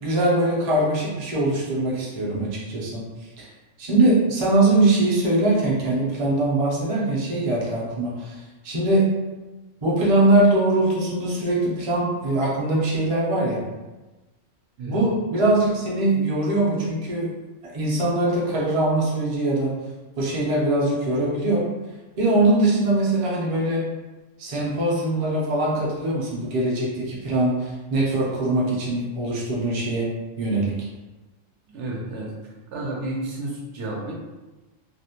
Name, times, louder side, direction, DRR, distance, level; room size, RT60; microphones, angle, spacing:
voice 1, 0.0-3.0 3.4-3.5 3.8-9.1 9.8-13.6 14.9-17.3 17.6-19.7 20.2-21.6 22.2-23.8 24.4-30.1 30.4-30.7, right 2 dB, 45° right, -5 dB, 0.4 m, -22 dB
voice 2, 31.7-32.3 32.7-34.1, right 2 dB, 70° right, -3 dB, 0.9 m, -31 dB
2.4 x 2.0 x 2.8 m, 1.1 s
omnidirectional pair, 1.3 m